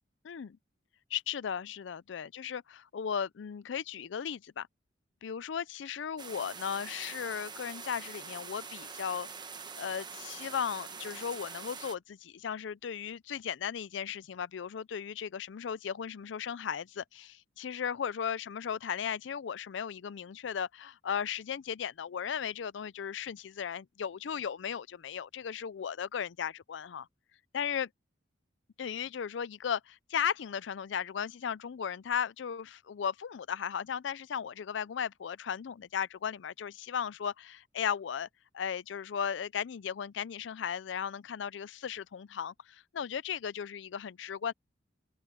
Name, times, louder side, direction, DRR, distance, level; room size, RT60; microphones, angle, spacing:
voice 1, 0.2-0.6 1.1-4.7 5.2-9.3 9.8-17.3 17.6-27.1 27.5-27.9 28.8-38.3 38.5-44.5, left 7 dB, 75° left, 0.4 m, -36 dB
sound 1, 6.2-12.0, right 5 dB, 25° right, 1.1 m, -44 dB
open air
head